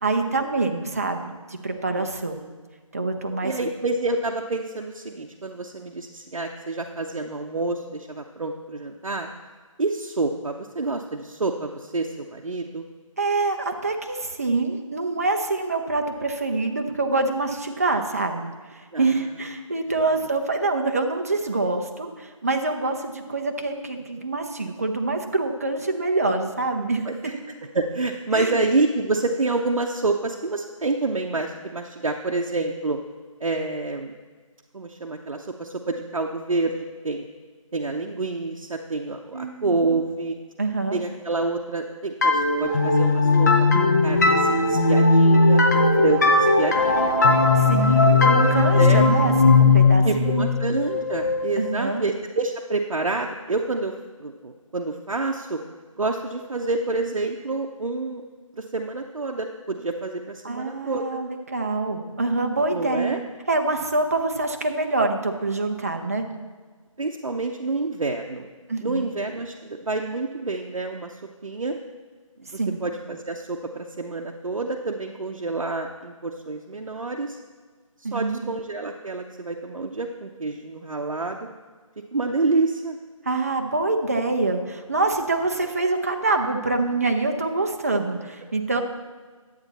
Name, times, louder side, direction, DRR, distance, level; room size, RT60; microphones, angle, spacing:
voice 1, 0.0-2.4 2.9-3.5 13.2-27.0 28.3-28.6 39.3-39.8 40.6-41.0 47.6-50.5 51.6-52.0 60.4-63.2 63.5-66.3 68.7-69.1 72.6-72.8 78.0-78.4 83.2-88.8, right 3 dB, 25° right, 4 dB, 0.6 m, -25 dB
voice 2, 3.4-9.3 9.8-12.8 18.9-19.0 27.1-27.3 27.7-33.0 33.4-34.1 34.7-37.3 37.7-40.4 40.9-43.5 43.8-47.4 48.7-49.0 50.0-53.9 54.2-55.6 56.0-58.2 58.6-61.2 62.7-63.2 67.0-68.5 68.8-71.1 71.4-71.8 72.5-77.4 78.1-81.5 82.1-83.0, right 3 dB, 70° right, 1 dB, 0.8 m, -28 dB
sound 1, 42.2-51.7, left 3 dB, 30° left, 0.7 m, -18 dB
10.5 x 8.1 x 4.1 m, 1.5 s
figure-of-eight pair, 170°, 18 cm